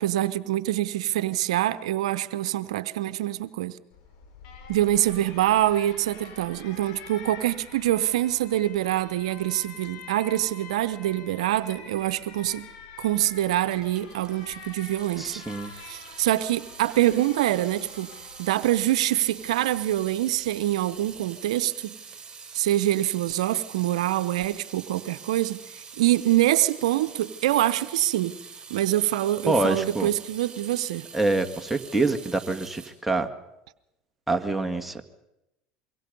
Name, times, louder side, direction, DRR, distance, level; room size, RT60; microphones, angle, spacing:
voice 1, 0.0-3.8 4.7-12.7 13.0-15.4 15.8-18.1 18.4-21.9 22.5-25.6 26.0-28.3 28.7-31.1, right 14 dB, 85° right, 14 dB, 0.8 m, -25 dB
Alarm, 3.9-21.1, left 6 dB, 70° left, 5.5 m, -47 dB
Water tap faucet / Sink (filling or washing) / Drip, 13.3-32.9, right 5 dB, 20° right, 5.7 m, -45 dB
voice 2, 15.2-15.7 29.5-30.1 31.1-33.3 34.3-35.0, right 2 dB, 5° right, 4 dB, 2.0 m, -26 dB
25.0 x 23.5 x 5.4 m, 0.90 s
hypercardioid pair, 85°, 3 cm